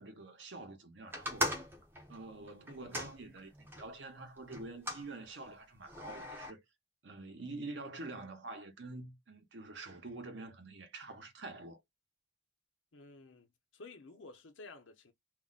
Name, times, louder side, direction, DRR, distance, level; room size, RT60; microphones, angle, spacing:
voice 1, 0.0-1.5 2.1-6.6 7.0-11.8, right 2 dB, 70° right, 0.8 m, -47 dB
sound 1, 1.1-3.9 4.5-5.1 5.9-6.5, equal, 10° right, 0.5 m, -39 dB
voice 2, 12.9-13.5 13.7-15.1, left 3 dB, 80° left, 0.7 m, -52 dB
2.5 x 2.1 x 3.7 m
head